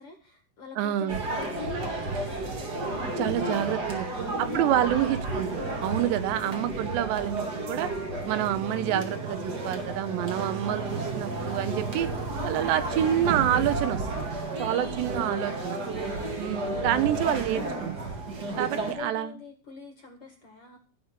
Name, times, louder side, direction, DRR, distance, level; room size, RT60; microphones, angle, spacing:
voice 1, 0.0-4.8 6.1-6.5 14.7-15.5 16.2-16.6 18.4-20.8, left 3 dB, 45° left, 4 dB, 1.9 m, -46 dB
voice 2, 0.8-1.2 3.2-4.1 4.4-7.9 8.3-12.1 12.4-14.3 14.6-15.8 16.4-17.9 18.6-19.3, right 11 dB, 80° right, 12 dB, 3.1 m, -28 dB
sound 1, 1.1-18.9, right 2 dB, 40° right, 1.5 m, -32 dB
15.5 x 5.3 x 8.1 m, 0.37 s
omnidirectional pair, 5.0 m